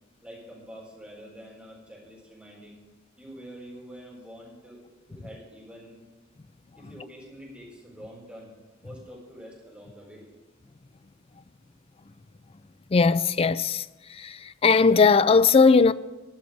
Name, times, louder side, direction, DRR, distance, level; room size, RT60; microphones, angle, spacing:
voice 1, 0.2-2.8 3.2-4.8 5.1-6.0 6.8-8.5 8.8-10.3, equal, 5° right, 4.3 m, -46 dB
voice 2, 12.9-13.8 14.2-15.9, left 4 dB, 30° left, 0.4 m, -19 dB
13.5 x 6.3 x 9.3 m
head